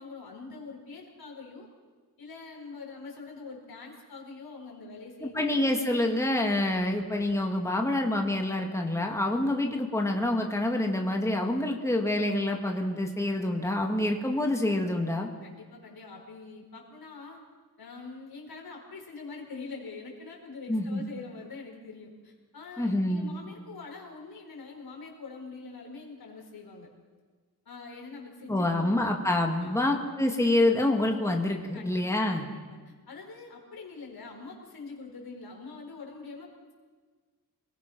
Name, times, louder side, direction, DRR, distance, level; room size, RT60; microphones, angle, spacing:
voice 1, 0.0-1.7 2.2-5.7 15.4-17.4 17.8-26.9 27.6-29.1 29.6-30.0 31.7-32.0 32.3-36.7, left 4 dB, 70° left, 0 dB, 5.1 m, -44 dB
voice 2, 5.2-15.3 20.7-21.0 22.8-23.3 28.5-32.5, left 1 dB, 10° left, 2 dB, 2.1 m, -27 dB
29.0 x 20.5 x 6.1 m, 1.4 s
wide cardioid pair, 150°, 37 cm